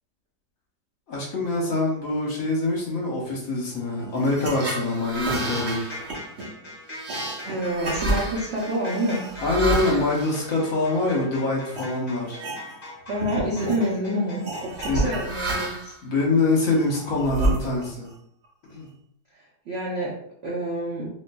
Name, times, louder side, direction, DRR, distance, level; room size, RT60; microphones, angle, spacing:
voice 1, 1.1-5.9 9.4-12.4 14.9-15.1 16.0-18.1 18.7-18.9, left 2 dB, 60° left, -3 dB, 1.1 m, -24 dB
sound 1, 4.2-11.2 11.7-11.9 12.3-12.9 13.2-13.8 14.4-16.0 16.5-18.1, right 2 dB, 55° right, 1.1 m, -30 dB
sound 2, 5.1-15.1, left 1 dB, 15° left, 0.8 m, -41 dB
voice 2, 7.4-9.2 13.1-16.0 19.3-20.1 20.4-21.1, right 1 dB, 80° right, -4 dB, 0.5 m, -28 dB
3.7 x 2.9 x 2.2 m, 0.70 s
omnidirectional pair, 2.0 m